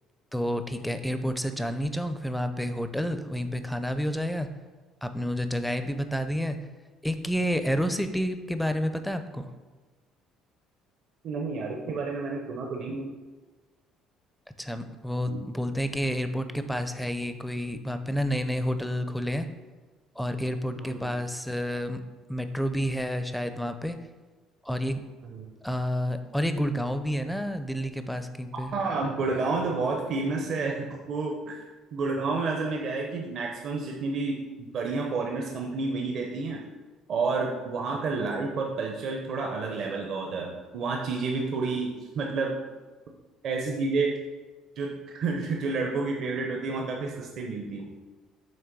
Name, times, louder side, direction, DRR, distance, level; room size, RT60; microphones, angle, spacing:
voice 1, 0.3-4.5 5.0-6.6 7.0-9.5 14.6-19.5 20.2-22.0 22.3-24.0 24.6-25.0 25.6-28.7, equal, ahead, 9 dB, 0.5 m, -29 dB
voice 2, 11.2-13.1 15.3-15.4 20.8-21.0 25.2-25.4 28.7-31.6 31.9-36.6 37.1-42.5 43.4-44.1 44.8-47.9, right 3 dB, 55° right, 1 dB, 0.8 m, -30 dB
7.5 x 3.0 x 6.0 m, 1.3 s
cardioid pair, 130°, 0 cm